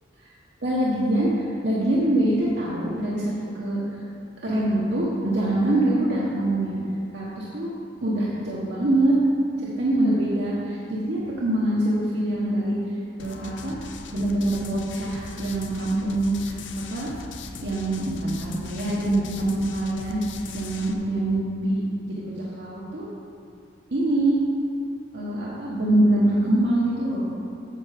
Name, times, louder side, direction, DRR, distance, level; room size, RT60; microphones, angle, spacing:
voice 1, 0.6-4.0 4.4-6.7 7.1-7.7 8.0-9.2 9.6-12.7 13.2-13.8 14.1-17.1 17.6-20.2 20.5-23.1 23.9-24.4 25.1-27.4, right 1 dB, 65° right, -6 dB, 1.2 m, -24 dB
sound 1, 13.2-20.9, left 4 dB, 75° left, 0.7 m, -40 dB
8.2 x 6.6 x 5.1 m, 2.5 s
head